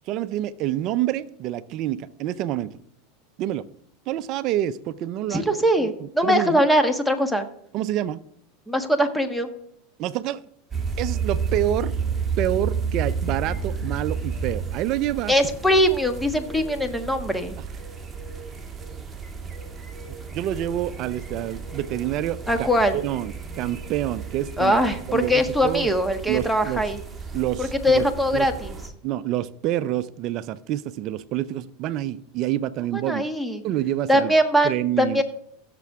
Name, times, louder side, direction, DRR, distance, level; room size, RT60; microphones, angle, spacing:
voice 1, 0.1-2.8 3.4-3.6 4.1-5.5 5.8-6.6 7.7-8.2 10.0-10.4 11.0-11.9 12.4-15.3 20.3-22.7 22.9-24.8 25.1-25.9 26.3-26.8 27.3-28.5 29.0-33.2 33.6-34.3 34.6-35.2, right 13 dB, 50° right, 0.6 m, -27 dB
voice 2, 5.3-7.5 8.7-9.5 15.3-17.5 22.5-23.0 24.6-27.0 27.6-28.8 32.9-33.6 34.1-34.7 35.0-35.2, equal, 5° left, 1.4 m, -21 dB
sound 1, 10.7-28.9, right 5 dB, 15° right, 1.9 m, -32 dB
16.0 x 6.9 x 3.7 m
supercardioid pair, 115°, 0 cm